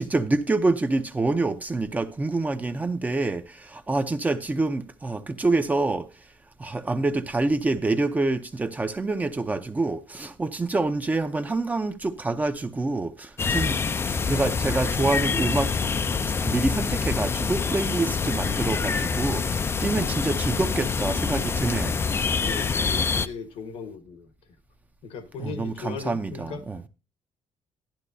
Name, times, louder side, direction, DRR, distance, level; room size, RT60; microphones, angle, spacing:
voice 1, 0.0-6.1 6.6-13.8 14.2-15.7 16.2-22.0 25.4-26.8, right 2 dB, 15° right, 0.7 m, -26 dB
sound 1, 13.4-23.3, left 5 dB, 25° left, 0.4 m, -26 dB
voice 2, 22.3-24.3 25.0-26.6, left 5 dB, 80° left, 1.4 m, -37 dB
12.0 x 11.0 x 2.7 m
cardioid pair, 130°, 10 cm